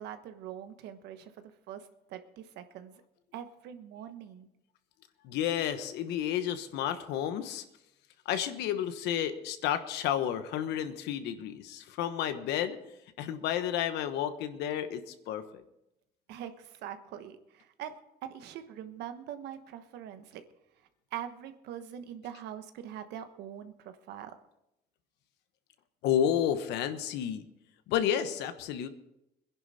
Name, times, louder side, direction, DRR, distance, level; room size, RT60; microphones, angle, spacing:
voice 1, 0.0-3.0 3.3-4.5 16.3-17.9 18.2-20.4 21.1-24.3, right 10 dB, 80° right, 9 dB, 1.2 m, -43 dB
voice 2, 5.2-7.6 8.2-12.8 13.2-15.6 26.0-27.4 27.9-28.9, left 10 dB, 85° left, 10 dB, 1.2 m, -31 dB
22.0 x 10.5 x 4.2 m, 0.87 s
cardioid pair, 110°, 17 cm